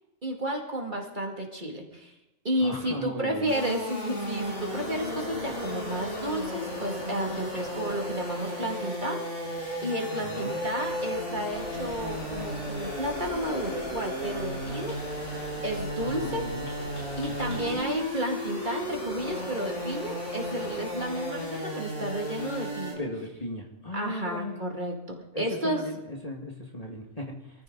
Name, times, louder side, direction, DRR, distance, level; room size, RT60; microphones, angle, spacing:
voice 1, 0.2-2.1 2.4-9.5 9.8-14.9 15.6-16.5 17.2-23.0 23.9-25.8, equal, 35° right, 1 dB, 2.4 m, -32 dB
voice 2, 2.6-3.5 10.2-10.7 16.0-16.7 17.5-17.8 23.0-24.6 25.3-27.6, left 1 dB, 30° left, 1 dB, 1.8 m, -37 dB
sound 1, 3.5-22.9, equal, 65° left, 4.9 m, -34 dB
sound 2, 11.5-17.9, left 1 dB, 80° left, 5.6 m, -43 dB
24.0 x 14.0 x 3.9 m, 0.97 s
omnidirectional pair, 1.4 m